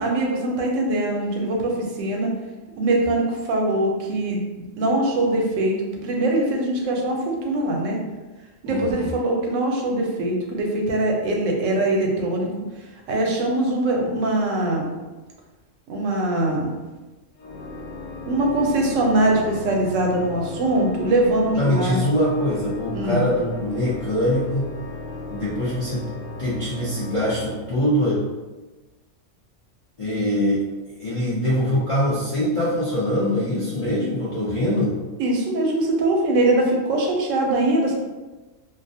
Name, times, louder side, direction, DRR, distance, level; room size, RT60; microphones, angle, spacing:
voice 1, 0.0-2.3 2.8-4.4 4.8-8.0 8.6-12.5 13.1-14.9 15.9-16.7 18.2-22.0 22.9-23.2 35.2-37.9, right 1 dB, 80° right, 0 dB, 0.9 m, -22 dB
voice 2, 8.7-9.1 21.6-24.7 25.3-26.1 26.4-28.2 30.0-30.7 31.0-34.9, equal, 50° left, -10 dB, 0.4 m, -23 dB
Organ, 17.4-28.3, left 2 dB, 85° left, 1.0 m, -36 dB
2.4 x 2.0 x 2.6 m, 1.2 s
omnidirectional pair, 1.3 m